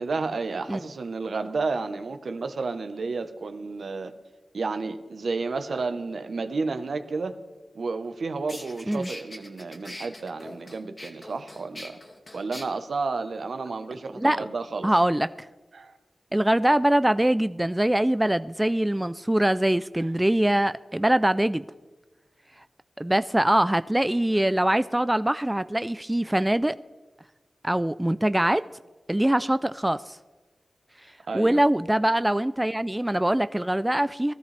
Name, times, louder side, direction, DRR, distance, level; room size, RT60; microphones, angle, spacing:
voice 1, 0.0-4.1 4.5-7.4 7.7-12.0 12.3-14.9 15.7-16.0 31.3-31.6, right 4 dB, 75° right, 1.0 m, -31 dB
sound 1, 8.0-8.1 8.5-12.6, left 1 dB, 30° left, 2.1 m, -42 dB
voice 2, 14.8-15.5 16.3-21.6 23.0-26.8 27.6-28.6 29.1-30.2 31.3-34.3, right 1 dB, 15° right, 0.3 m, -23 dB
19.5 x 13.5 x 3.4 m
cardioid pair, 50°, 0 cm